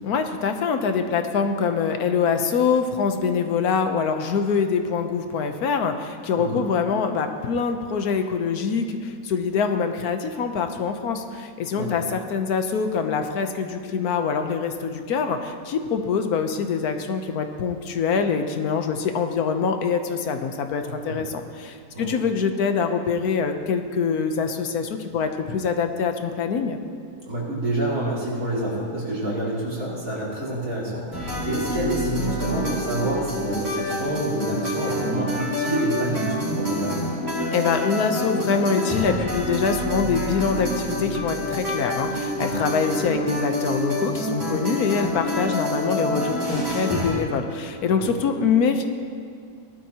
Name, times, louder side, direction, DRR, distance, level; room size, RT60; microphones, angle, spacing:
voice 1, 0.0-26.8 37.5-48.8, left 5 dB, 85° left, 6 dB, 1.4 m, -24 dB
voice 2, 20.8-21.2 21.9-22.1 27.3-37.0 42.4-42.5 47.9-48.1, right 1 dB, 70° right, -6 dB, 3.4 m, -28 dB
sound 1, 31.1-47.2, equal, 10° right, 3.8 m, -27 dB
18.5 x 12.0 x 2.9 m, 2.3 s
omnidirectional pair, 1.6 m